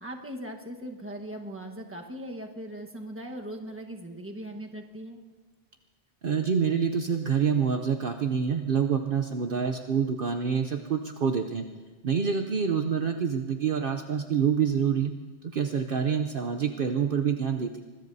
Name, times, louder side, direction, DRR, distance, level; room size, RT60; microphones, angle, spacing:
voice 1, 0.0-5.2, right 1 dB, 10° right, 2 dB, 1.2 m, -39 dB
voice 2, 6.2-11.7 12.0-15.1 15.4-17.8, right 6 dB, 55° right, 5 dB, 0.8 m, -27 dB
25.5 x 21.0 x 2.7 m, 1.3 s
omnidirectional pair, 1.2 m